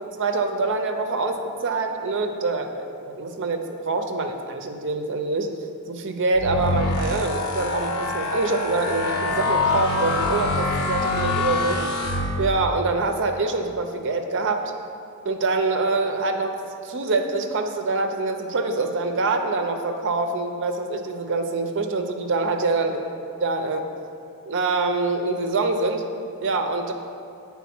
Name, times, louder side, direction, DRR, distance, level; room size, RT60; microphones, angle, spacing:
voice 1, 0.2-5.5 5.9-11.8 12.4-14.7 15.2-16.5 16.8-23.0 23.4-23.8 24.5-26.1 26.4-26.9, right 3 dB, 55° right, 5 dB, 0.6 m, -25 dB
sound 1, 6.3-12.8, left 2 dB, 90° left, 0.8 m, -25 dB
7.2 x 3.6 x 5.9 m, 2.5 s
head